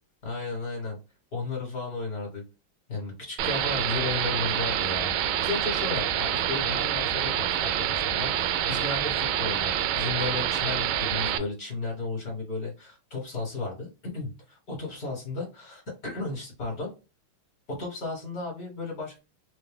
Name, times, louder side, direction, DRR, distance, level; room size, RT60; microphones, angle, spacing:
voice 1, 0.2-1.0 1.3-2.4 2.9-5.1 5.4-16.9 17.7-19.2, left 3 dB, 50° left, -1 dB, 1.8 m, -34 dB
sound 1, 3.4-11.4, right 10 dB, 80° right, 1.3 m, -27 dB
4.2 x 2.2 x 3.4 m, 0.30 s
omnidirectional pair, 2.3 m